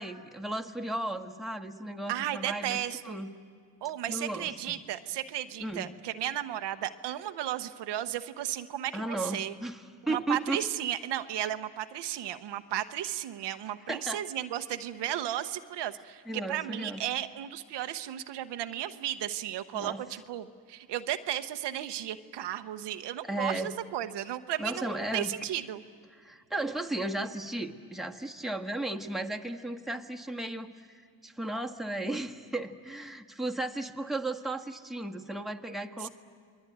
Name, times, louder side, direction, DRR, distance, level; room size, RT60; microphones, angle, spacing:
voice 1, 0.0-2.8 3.0-3.3 4.1-4.8 5.6-5.9 8.9-10.7 13.9-14.2 16.3-17.0 19.7-20.0 23.2-23.7 24.6-25.3 26.1-36.1, right 2 dB, ahead, 3 dB, 1.6 m, -35 dB
voice 2, 2.1-3.2 3.8-9.5 10.0-25.8 36.0-36.1, right 12 dB, 90° right, 10 dB, 0.8 m, -34 dB
28.0 x 21.0 x 9.2 m, 2.1 s
cardioid pair, 65°, 40 cm